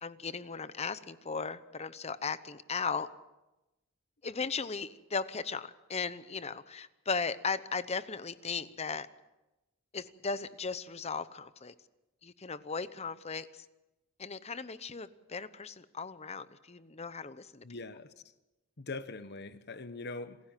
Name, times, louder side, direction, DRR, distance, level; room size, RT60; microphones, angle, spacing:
voice 1, 0.0-3.1 4.2-9.1 9.9-11.7 12.2-13.7 14.2-17.6, left 5 dB, 30° left, 0.8 m, -37 dB
voice 2, 17.6-18.1 18.8-20.4, left 3 dB, 50° left, 1.2 m, -42 dB
27.5 x 15.5 x 7.5 m
head